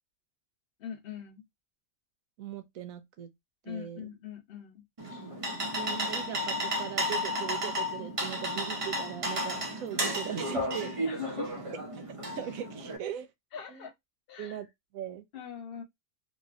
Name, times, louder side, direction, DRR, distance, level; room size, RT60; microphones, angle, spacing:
voice 1, 0.8-1.4 3.6-4.8 11.1-11.6 13.5-13.9 14.3-14.6 15.3-15.8, left 8 dB, 50° left, 0.8 m, -41 dB
voice 2, 2.4-3.3 3.7-4.1 5.6-10.9 12.3-13.3 13.7-13.9 14.4-14.7 14.9-15.2, right 9 dB, 85° right, 1.0 m, -39 dB
sound 1, 5.0-13.0, equal, 40° right, 0.5 m, -33 dB
3.1 x 2.7 x 2.4 m
omnidirectional pair, 1.4 m